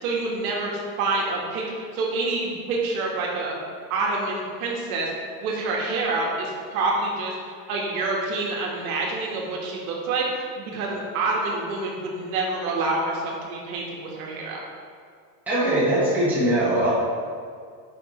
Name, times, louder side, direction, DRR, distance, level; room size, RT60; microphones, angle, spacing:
voice 1, 0.0-3.6 3.9-5.1 5.4-14.6, right 3 dB, 65° right, -2 dB, 1.6 m, -27 dB
voice 2, 15.5-16.9, right 1 dB, 5° right, -10 dB, 1.6 m, -21 dB
8.8 x 4.8 x 3.2 m, 2.1 s
supercardioid pair, 165°, 47 cm